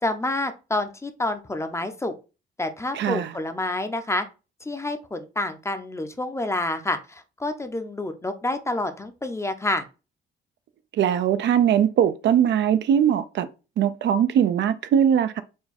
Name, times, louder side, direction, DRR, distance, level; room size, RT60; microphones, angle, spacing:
voice 1, 0.0-2.1 2.6-4.3 4.6-9.9, left 2 dB, 15° left, 0.6 m, -28 dB
voice 2, 2.9-3.3 10.9-13.5 13.8-15.4, right 9 dB, 65° right, 0.5 m, -21 dB
4.6 x 2.2 x 4.1 m
cardioid pair, 90°, 20 cm